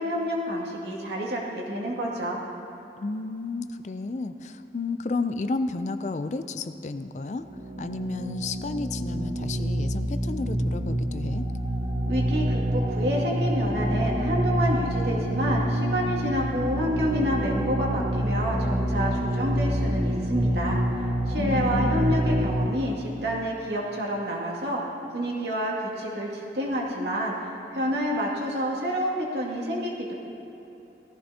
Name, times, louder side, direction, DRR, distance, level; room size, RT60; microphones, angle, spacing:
voice 1, 0.0-2.4 12.1-24.8 25.1-30.1, equal, 85° right, -3 dB, 2.3 m, -28 dB
voice 2, 3.0-7.5 7.8-11.4 21.4-22.2, left 3 dB, 40° left, 10 dB, 0.4 m, -32 dB
sound 1, 7.4-22.7, right 1 dB, 40° right, 0.9 m, -27 dB
17.0 x 14.5 x 2.8 m, 3.0 s
head